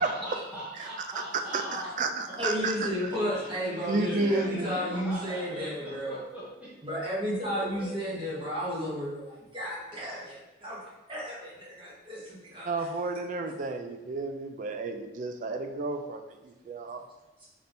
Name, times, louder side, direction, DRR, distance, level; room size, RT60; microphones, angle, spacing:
voice 1, 0.0-6.9 7.4-8.4, equal, 5° right, -9 dB, 0.7 m, -41 dB
voice 2, 1.5-2.9 3.9-4.8 12.6-17.1, right 3 dB, 45° right, 6 dB, 0.3 m, -31 dB
voice 3, 2.4-6.2 6.8-12.9 17.4-17.5, equal, 30° right, -8 dB, 1.4 m, -33 dB
4.2 x 3.3 x 2.6 m, 1.0 s
head